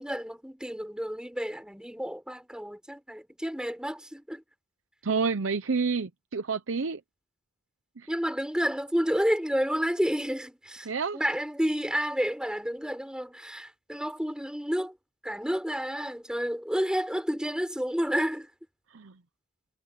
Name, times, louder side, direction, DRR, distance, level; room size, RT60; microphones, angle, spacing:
voice 1, 0.0-4.4 8.1-15.0 15.2-18.5, equal, 5° right, 5.3 m, -30 dB
voice 2, 5.0-7.0 8.0-8.1 10.9-11.2 18.9-19.2, right 4 dB, 85° right, 0.7 m, -29 dB
head